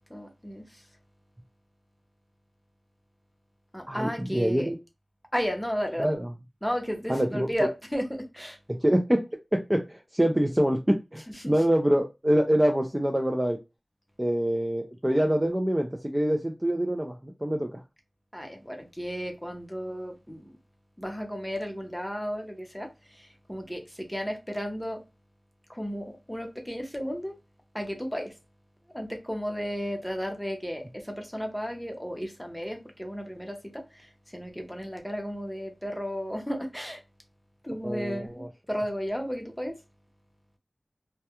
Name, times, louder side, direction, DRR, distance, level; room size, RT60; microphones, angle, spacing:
voice 1, 0.1-0.8 3.7-4.7 5.3-6.1 6.6-8.6 11.3-11.5 18.3-20.6 21.0-25.0 25.7-27.4 27.7-28.3 28.9-37.0 37.6-39.8, equal, 5° left, 0.7 m, -34 dB
voice 2, 3.9-4.8 6.0-6.3 7.1-7.5 8.7-9.3 9.5-13.6 14.2-17.8 37.8-38.5, equal, 15° right, 0.4 m, -25 dB
2.2 x 2.2 x 2.8 m
wide cardioid pair, 65°, 0 cm